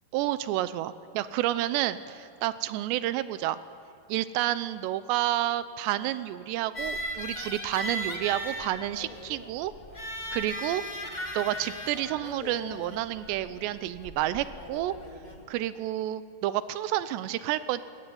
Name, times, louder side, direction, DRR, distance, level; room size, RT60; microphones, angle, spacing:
voice 1, 0.1-3.6 4.1-9.7 10.3-10.8 11.3-14.9 15.5-17.8, right 14 dB, 85° right, 14 dB, 2.9 m, -30 dB
sound 1, 6.7-15.4, equal, 55° left, 0.5 m, -38 dB
23.0 x 19.0 x 9.5 m, 2.5 s
omnidirectional pair, 5.0 m